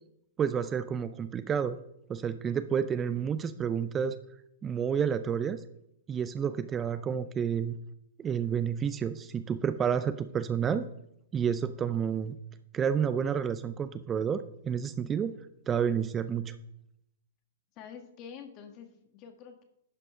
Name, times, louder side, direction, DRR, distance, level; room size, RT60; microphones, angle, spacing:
voice 1, 0.4-1.8 2.1-4.2 4.6-5.6 6.1-7.8 8.2-10.9 11.3-12.4 12.7-15.3 15.7-16.5, right 7 dB, 20° right, 12 dB, 0.5 m, -30 dB
voice 2, 17.8-19.6, left 7 dB, 40° left, 5 dB, 1.8 m, -47 dB
11.0 x 5.3 x 5.0 m, 0.79 s
hypercardioid pair, 120°, 0 cm